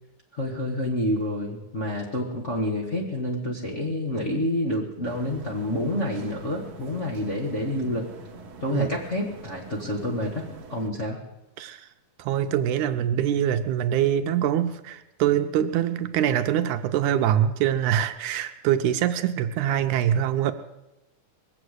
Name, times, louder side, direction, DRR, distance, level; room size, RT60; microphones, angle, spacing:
voice 1, 0.3-8.1 8.6-10.4 10.7-11.2, left 1 dB, 30° left, -3 dB, 1.3 m, -28 dB
sound 1, 5.0-10.9, right 3 dB, 55° right, 1.5 m, -44 dB
voice 2, 11.6-11.9 12.2-20.5, right 10 dB, 80° right, 8 dB, 2.0 m, -24 dB
21.0 x 7.9 x 8.1 m, 0.94 s
omnidirectional pair, 3.7 m